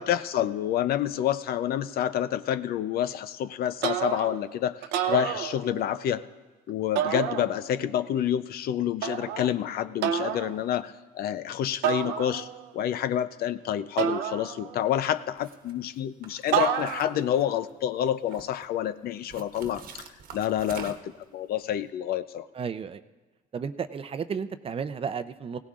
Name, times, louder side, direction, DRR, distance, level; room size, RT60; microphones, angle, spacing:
voice 1, 0.0-6.2 6.7-12.5 12.7-20.1 20.3-22.4, left 10 dB, 65° left, 13 dB, 0.6 m, -28 dB
sound 1, 3.8-4.5 4.8-6.0 7.0-7.9 9.0-9.5 10.0-10.5 11.8-12.7 14.0-15.0 16.5-17.3, right 9 dB, 90° right, 0.8 m, -29 dB
sound 2, 15.4-15.7 16.2-17.7 18.1-18.7 19.3-21.2, right 6 dB, 60° right, 1.2 m, -45 dB
voice 2, 22.5-23.0 23.5-25.6, right 6 dB, 35° right, 11 dB, 0.6 m, -33 dB
19.5 x 17.0 x 2.5 m, 1.2 s
cardioid pair, 110°, 17 cm